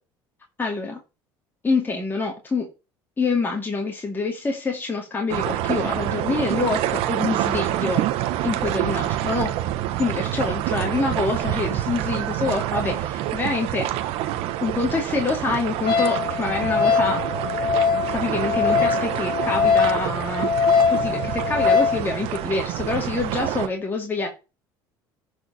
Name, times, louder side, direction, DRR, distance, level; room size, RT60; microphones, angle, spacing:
voice 1, 0.6-1.0 1.6-2.7 3.2-8.0 8.4-9.6 10.0-13.9 14.6-17.2 18.1-20.5 20.9-24.3, left 3 dB, 20° left, 2.4 m, -26 dB
sound 1, 5.3-23.7, right 13 dB, 75° right, 1.1 m, -27 dB
Wind instrument woodwind instrument, 15.9-22.0, left 6 dB, 50° left, 2.1 m, -22 dB
10.5 x 5.0 x 6.2 m
supercardioid pair, 100°, 10 cm